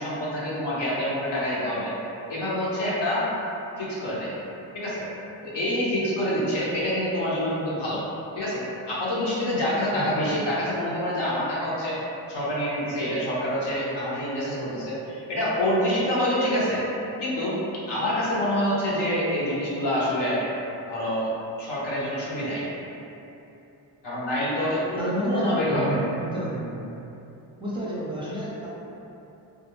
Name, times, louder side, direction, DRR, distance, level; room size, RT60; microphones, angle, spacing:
voice 1, 0.0-1.9 2.3-3.3 3.8-4.3 4.7-5.1 5.4-8.0 8.3-12.0 12.3-16.8 17.2-17.6 17.9-20.4 20.9-21.3 21.6-22.6 24.0-26.0, equal, 60° left, -7 dB, 0.9 m, -26 dB
voice 2, 9.9-10.3 25.0-25.4 25.7-26.9 27.6-28.7, right 1 dB, 10° right, -9 dB, 0.6 m, -31 dB
2.4 x 2.0 x 3.0 m, 2.9 s
cardioid pair, 65°, 45 cm